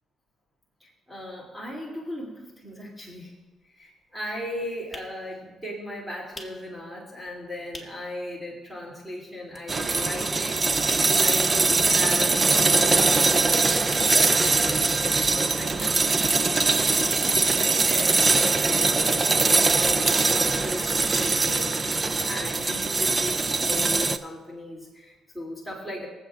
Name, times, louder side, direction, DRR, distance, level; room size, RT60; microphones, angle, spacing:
voice 1, 0.8-3.3 3.7-26.1, left 1 dB, ahead, -5 dB, 2.8 m, -37 dB
sound 1, 3.5-8.2 8.5-8.6 8.9-10.1 10.4-14.9 15.2-17.3 17.6-17.7 17.8-17.9, left 2 dB, 20° left, 2.0 m, -47 dB
sound 2, 9.7-24.2, right 3 dB, 30° right, 0.5 m, -22 dB
23.5 x 8.0 x 2.5 m, 1.2 s
cardioid pair, 90°, 0 cm